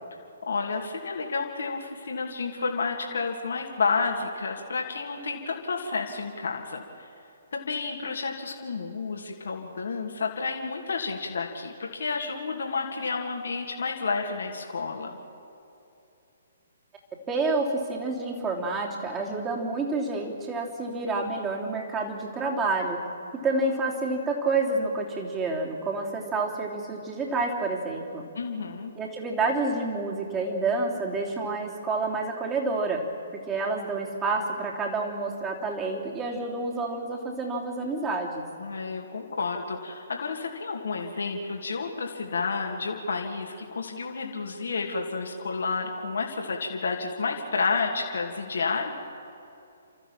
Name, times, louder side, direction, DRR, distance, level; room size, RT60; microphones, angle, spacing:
voice 1, 0.4-6.8 7.5-15.2 28.4-28.9 38.6-49.0, left 4 dB, 65° left, 2 dB, 2.5 m, -30 dB
voice 2, 17.3-23.0 23.4-28.3 28.9-33.1 33.3-38.4, right 3 dB, 15° right, 0 dB, 3.3 m, -29 dB
29.5 x 13.5 x 7.4 m, 2.7 s
figure-of-eight pair, 130°, 0 cm